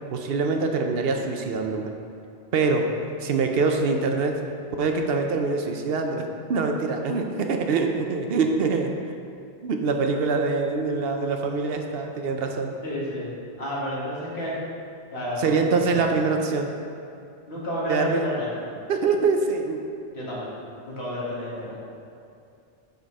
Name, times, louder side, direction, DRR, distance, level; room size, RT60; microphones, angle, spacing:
voice 1, 0.1-1.9 2.5-4.4 4.8-8.9 9.6-12.8 15.4-16.7 17.9-18.2 18.9-19.8, right 4 dB, 70° right, 4 dB, 0.8 m, -24 dB
voice 2, 12.8-14.6 15.1-16.0 17.5-18.5 20.1-20.5 20.8-21.8, equal, 90° left, -7 dB, 2.0 m, -31 dB
6.4 x 5.4 x 4.6 m, 2.5 s
omnidirectional pair, 1.1 m